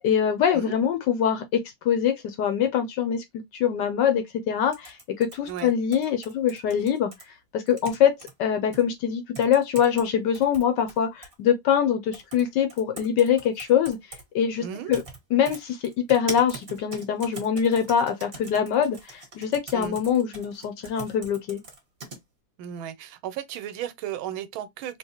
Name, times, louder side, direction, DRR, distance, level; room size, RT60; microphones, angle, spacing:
voice 1, 0.0-3.2 3.5-7.1 7.5-14.0 14.3-15.0 15.3-15.8 16.1-21.6, left 8 dB, 70° left, 1.1 m, -24 dB
sound 1, 4.7-7.2 7.7-8.3 8.7-8.8 9.3-10.1 10.3-11.3 12.1-12.4 12.7-14.2 14.9-15.2 15.4-22.2, right 3 dB, 35° right, 1.1 m, -41 dB
voice 2, 14.6-14.9 19.7-20.0 22.6-25.0, right 10 dB, 85° right, 1.4 m, -35 dB
3.9 x 2.5 x 2.8 m
omnidirectional pair, 2.2 m